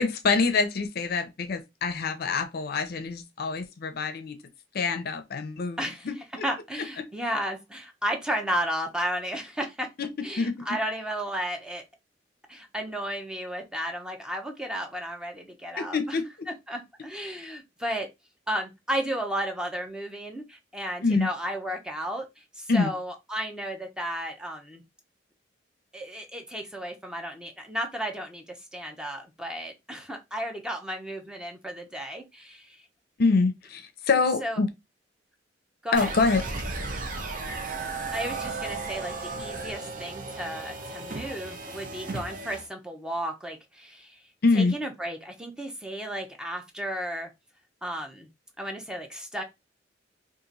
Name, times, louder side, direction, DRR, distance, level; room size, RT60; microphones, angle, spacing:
voice 1, 0.0-4.4 4.7-5.8 6.1-6.2 10.0-10.1 10.4-10.8 15.8-16.3 21.0-21.3 22.7-22.9 33.2-34.7 35.9-36.4 44.4-44.7, left 4 dB, 55° left, 0.5 m, -25 dB
voice 2, 5.8-6.1 6.4-9.9 10.2-11.8 12.5-16.2 16.7-18.1 18.5-24.8 25.9-32.8 34.4-34.6 35.8-36.1 37.5-37.6 38.1-44.2 44.5-47.3 47.8-48.3 48.6-49.4, equal, 5° right, 0.7 m, -33 dB
sound 1, 35.9-42.7, right 3 dB, 45° right, 0.8 m, -35 dB
2.9 x 2.5 x 3.8 m
head